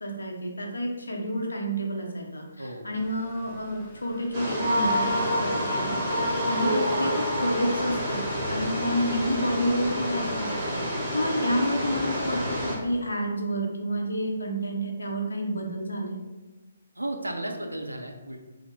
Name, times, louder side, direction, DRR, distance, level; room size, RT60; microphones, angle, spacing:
voice 1, 0.0-6.0 6.4-8.2 8.5-10.7 11.1-16.2, equal, 75° left, 1 dB, 0.6 m, -29 dB
sound 1, 2.9-13.1, left 1 dB, 15° left, 0.8 m, -49 dB
sound 2, 4.3-12.7, equal, 25° right, 1.0 m, -30 dB
sound 3, 4.5-8.4, equal, 40° right, 0.6 m, -28 dB
voice 2, 10.7-11.0 17.0-18.4, right 1 dB, 85° right, 3 dB, 0.4 m, -34 dB
2.7 x 2.0 x 3.4 m, 1.1 s
figure-of-eight pair, 135°, 0 cm